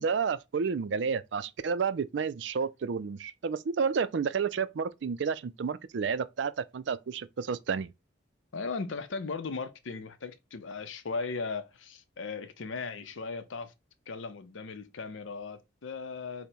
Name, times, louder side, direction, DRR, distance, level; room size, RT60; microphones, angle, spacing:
voice 1, 0.0-7.9, right 5 dB, 65° right, 0.4 m, -31 dB
voice 2, 8.5-13.7 14.1-16.5, left 4 dB, 80° left, 0.6 m, -37 dB
5.1 x 2.1 x 4.4 m
head